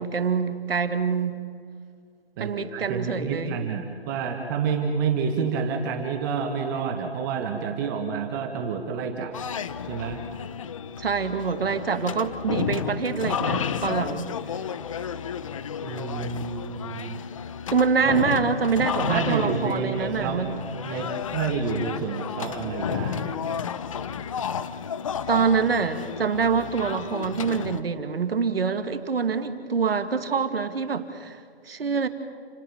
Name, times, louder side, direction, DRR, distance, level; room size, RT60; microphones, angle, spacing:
voice 1, 0.0-1.4 2.4-3.6 11.0-14.3 17.7-20.6 25.3-32.1, right 5 dB, 70° right, 9 dB, 2.3 m, -25 dB
voice 2, 2.4-9.5 9.8-10.2 15.8-17.2 18.1-18.2 19.0-20.5 20.8-23.4, right 6 dB, 20° right, 4 dB, 1.7 m, -29 dB
sound 1, 9.3-27.8, left 7 dB, 35° left, 0.9 m, -32 dB
29.5 x 18.5 x 7.2 m, 2.2 s
hypercardioid pair, 160°, 31 cm